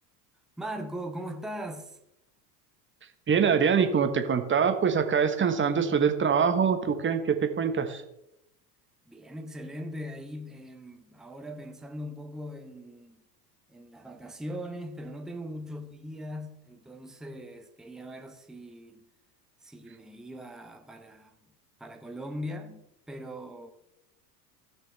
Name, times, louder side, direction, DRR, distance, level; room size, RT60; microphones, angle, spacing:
voice 1, 0.6-2.0 9.1-13.2 13.7-19.0 19.6-21.3 21.8-23.7, equal, ahead, 0.9 m, -40 dB
voice 2, 3.3-8.0, right 6 dB, 25° right, 1.4 m, -24 dB
17.0 x 6.4 x 3.4 m
hypercardioid pair, 85°, 49 cm